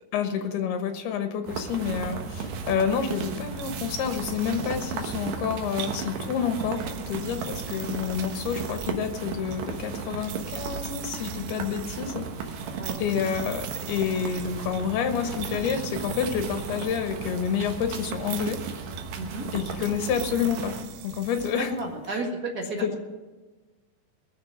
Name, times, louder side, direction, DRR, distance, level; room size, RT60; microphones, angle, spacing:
voice 1, 0.1-12.6 13.0-18.6 19.5-20.7 21.0-21.8 22.1-22.2 22.8-23.0, left 7 dB, 80° left, 7 dB, 3.2 m, -29 dB
sound 1, 1.5-20.8, right 5 dB, 65° right, 2.6 m, -35 dB
sound 2, 3.3-22.1, right 12 dB, 85° right, 2.6 m, -43 dB
voice 2, 21.6-22.8, right 3 dB, 35° right, 0 dB, 1.5 m, -33 dB
21.0 x 7.3 x 6.2 m, 1.2 s
omnidirectional pair, 4.5 m